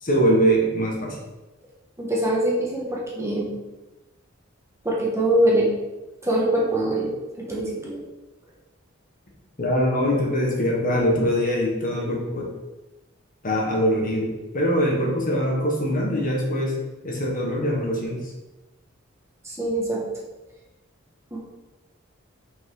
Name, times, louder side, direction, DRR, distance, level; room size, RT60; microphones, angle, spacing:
voice 1, 0.0-1.2 9.6-12.5 13.4-14.3 14.5-16.7 17.0-18.2, equal, 45° left, -1 dB, 1.5 m, -22 dB
voice 2, 2.0-3.5 4.8-5.7 6.2-8.0 19.4-20.0 21.3-21.4, right 1 dB, 15° right, -4 dB, 1.3 m, -23 dB
6.0 x 5.5 x 3.8 m, 1.1 s
head